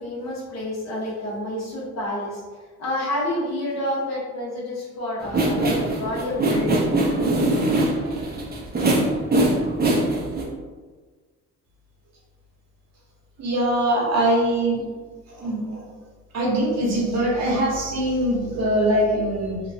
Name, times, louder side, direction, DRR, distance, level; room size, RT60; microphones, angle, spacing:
voice 1, 0.0-2.4 2.8-6.9, left 1 dB, 60° left, -5 dB, 1.1 m, -29 dB
sound 1, 5.2-10.4, right 1 dB, 30° right, 0.6 m, -22 dB
voice 2, 13.4-14.8 15.3-15.8 16.3-19.6, right 1 dB, 60° right, -3 dB, 0.9 m, -22 dB
2.9 x 2.2 x 2.7 m, 1.4 s
cardioid pair, 90°, 30 cm